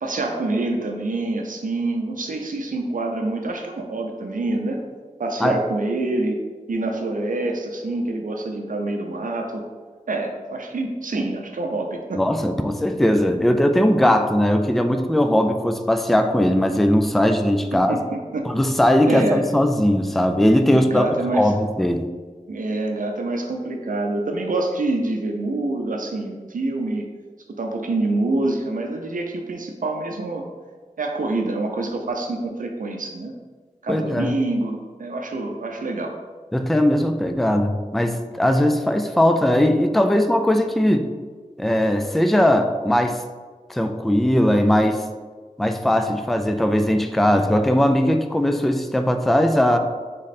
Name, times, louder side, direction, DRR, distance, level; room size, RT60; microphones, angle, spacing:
voice 1, 0.0-4.8 5.2-6.4 6.7-9.7 10.1-12.2 17.7-18.5 19.1-19.4 20.7-21.5 22.5-27.1 27.6-30.4 31.0-33.3 33.8-36.2, right 2 dB, 80° right, 2 dB, 0.6 m, -26 dB
voice 2, 12.1-18.0 18.5-21.1 21.3-22.1 33.9-34.3 36.5-41.1 41.6-43.2 43.7-45.0 45.6-49.8, left 1 dB, ahead, 6 dB, 0.3 m, -19 dB
3.7 x 3.2 x 4.1 m, 1.4 s
wide cardioid pair, 60°, 14 cm